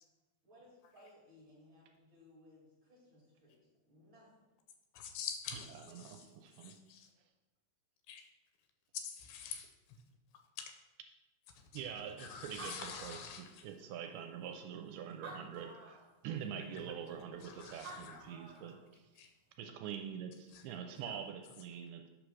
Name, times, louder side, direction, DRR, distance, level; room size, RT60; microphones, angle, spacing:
voice 1, 0.4-4.3, left 1 dB, 45° right, -6 dB, 1.8 m, -62 dB
voice 2, 4.9-6.3 6.6-7.1 8.1-8.2 8.9-9.7 10.6-10.7 11.6-11.8 12.2-13.7 17.4-18.2 19.2-19.3 20.5-20.6, left 7 dB, 85° left, 5 dB, 2.7 m, -46 dB
voice 3, 6.0-6.7 11.7-19.0 19.6-22.1, right 8 dB, 80° right, 5 dB, 2.4 m, -45 dB
Animal, 12.1-12.2 12.4-13.8 14.5-14.6 15.1-16.1 17.6-17.7 17.8-18.8, right 2 dB, 60° right, 1.8 m, -50 dB
8.5 x 3.3 x 6.1 m, 1.0 s
omnidirectional pair, 4.7 m